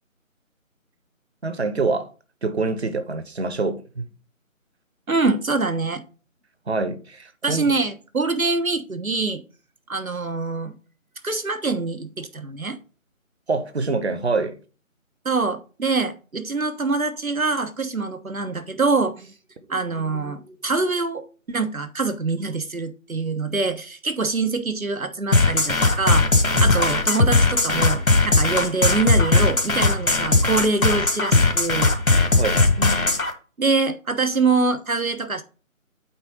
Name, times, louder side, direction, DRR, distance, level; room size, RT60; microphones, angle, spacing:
voice 1, 1.4-2.1 2.4-4.1 6.7-7.7 13.5-14.6 26.5-26.7 32.4-33.2, right 3 dB, 50° right, 1.2 m, -26 dB
voice 2, 5.1-6.0 7.4-9.4 9.9-10.7 11.2-12.8 15.2-19.3 19.7-26.3 26.6-31.9 33.6-35.4, right 3 dB, 85° right, 1.3 m, -24 dB
sound 1, 25.3-33.3, left 2 dB, 85° left, 1.8 m, -18 dB
8.6 x 3.8 x 5.4 m
figure-of-eight pair, 160°, 41 cm